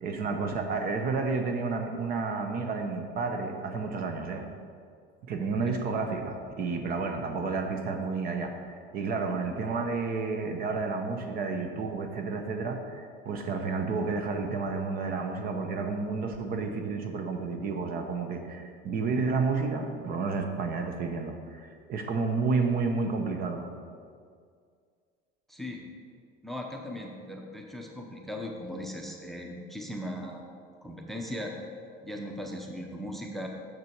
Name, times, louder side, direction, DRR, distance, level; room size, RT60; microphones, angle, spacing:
voice 1, 0.0-4.4 5.2-23.7, right 4 dB, 45° right, 5 dB, 0.9 m, -31 dB
voice 2, 25.5-25.8 26.4-30.4 30.8-31.5 32.0-33.5, equal, ahead, 1 dB, 0.7 m, -38 dB
6.8 x 6.7 x 4.5 m, 2.1 s
cardioid pair, 135°, 20 cm